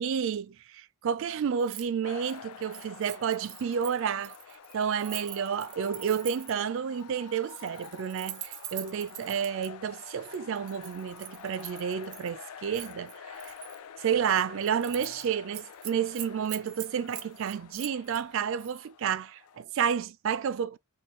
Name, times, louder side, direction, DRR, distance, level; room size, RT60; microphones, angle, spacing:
voice 1, 0.0-4.4 4.7-13.5 14.0-20.8, right 7 dB, 60° right, 0.3 m, -30 dB
Keys jangling, 1.6-1.9 2.2-6.7 7.4-9.7 10.3-12.3 12.7-13.8 14.2-14.3 14.6-15.3 15.5-18.2 18.6-18.8, right 12 dB, 85° right, 0.7 m, -43 dB
sound 1, 2.0-19.6, left 7 dB, 85° left, 0.5 m, -48 dB
4.4 x 2.3 x 3.1 m
head